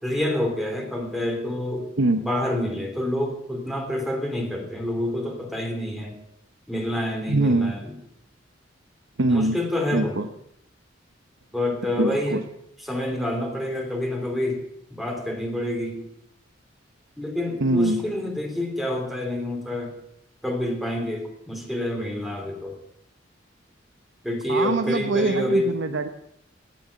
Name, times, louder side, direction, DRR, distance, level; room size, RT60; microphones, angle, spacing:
voice 1, 0.0-1.9 2.2-6.1 6.7-7.8 9.3-10.2 11.5-12.4 12.9-14.6 14.9-16.0 17.2-19.9 20.4-22.8 24.2-25.7, left 1 dB, ahead, 2 dB, 3.1 m, -27 dB
voice 2, 7.3-7.7 9.2-9.6 9.9-10.3 12.0-12.4 17.6-18.0 24.5-26.1, right 2 dB, 75° right, 7 dB, 0.9 m, -23 dB
18.0 x 7.8 x 8.3 m, 0.76 s
head